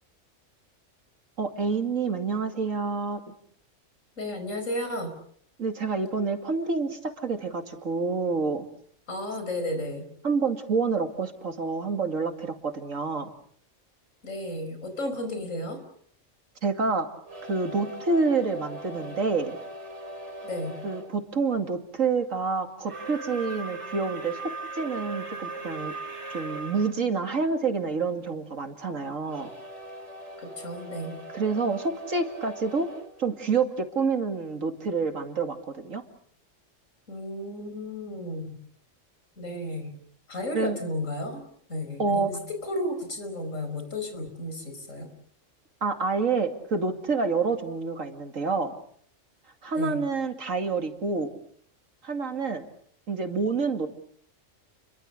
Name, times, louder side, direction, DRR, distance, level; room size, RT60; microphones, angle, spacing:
voice 1, 1.4-3.3 5.6-8.7 10.2-13.3 16.6-17.1 17.5-19.6 20.8-25.9 26.3-29.5 31.3-32.9 33.2-36.0 40.5-40.8 42.0-42.3 45.8-48.7 49.6-51.4 52.0-52.7 53.1-53.9, right 4 dB, 85° right, 6 dB, 2.8 m, -28 dB
voice 2, 4.2-5.1 9.1-10.1 14.2-15.8 20.4-20.8 30.4-31.2 37.1-38.6 39.4-39.9 40.3-41.4 41.7-45.1 49.8-50.0, left 1 dB, 80° left, 7 dB, 5.6 m, -33 dB
sound 1, 17.2-21.1 22.8-26.9 29.2-34.1, right 2 dB, 60° right, 5.0 m, -40 dB
30.0 x 23.0 x 6.7 m, 0.63 s
omnidirectional pair, 1.3 m